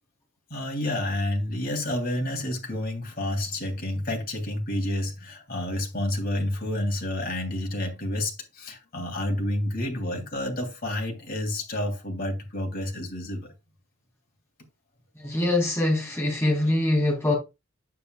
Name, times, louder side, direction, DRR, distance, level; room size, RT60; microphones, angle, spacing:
voice 1, 0.5-13.5, left 1 dB, 45° left, 2.7 m, -29 dB
voice 2, 15.2-17.3, left 1 dB, 15° left, 3.4 m, -23 dB
9.4 x 7.9 x 2.3 m
head